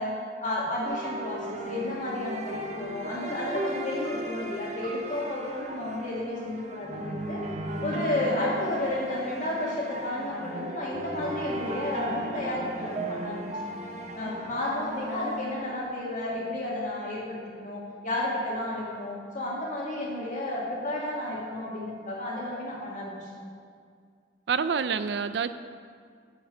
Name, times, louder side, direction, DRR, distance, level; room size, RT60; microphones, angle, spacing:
voice 1, 0.0-7.4 7.8-13.7 14.1-23.3, left 1 dB, 45° left, -4 dB, 1.9 m, -32 dB
sound 1, 0.8-16.3, right 1 dB, 40° right, 0.7 m, -36 dB
voice 2, 24.5-25.5, right 6 dB, 65° right, 12 dB, 0.4 m, -27 dB
9.1 x 7.1 x 6.3 m, 2.1 s
head